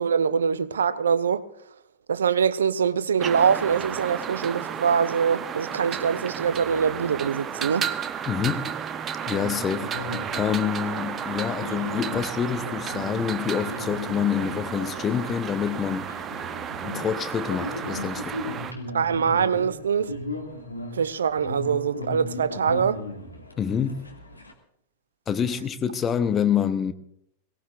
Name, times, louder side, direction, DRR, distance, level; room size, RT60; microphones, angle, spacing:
voice 1, 0.0-1.5 2.1-7.9 18.9-20.1 20.9-23.0, right 7 dB, 70° right, 0.5 m, -23 dB
sound 1, 3.2-18.7, right 8 dB, 25° right, 0.7 m, -33 dB
voice 2, 8.3-8.8 9.3-16.2 16.8-18.4 23.6-24.2 25.3-26.9, left 8 dB, 25° left, 0.9 m, -27 dB
sound 2, 9.2-24.5, left 1 dB, 85° left, 2.1 m, -37 dB
22.5 x 18.0 x 2.5 m
figure-of-eight pair, 90°, 0 cm